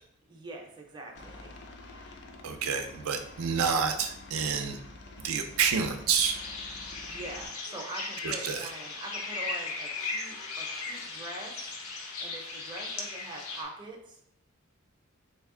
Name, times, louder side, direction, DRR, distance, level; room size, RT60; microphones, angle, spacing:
voice 1, 0.3-1.5 7.0-14.2, right 2 dB, 20° right, 0 dB, 0.5 m, -44 dB
Aircraft, 1.1-7.5, left 2 dB, 50° left, 0.4 m, -48 dB
voice 2, 2.4-4.8 5.2-6.4 8.2-8.7, right 6 dB, 75° right, 5 dB, 0.4 m, -28 dB
sound 1, 6.2-13.6, left 3 dB, 85° left, 0.7 m, -37 dB
3.3 x 2.7 x 3.6 m, 0.73 s
head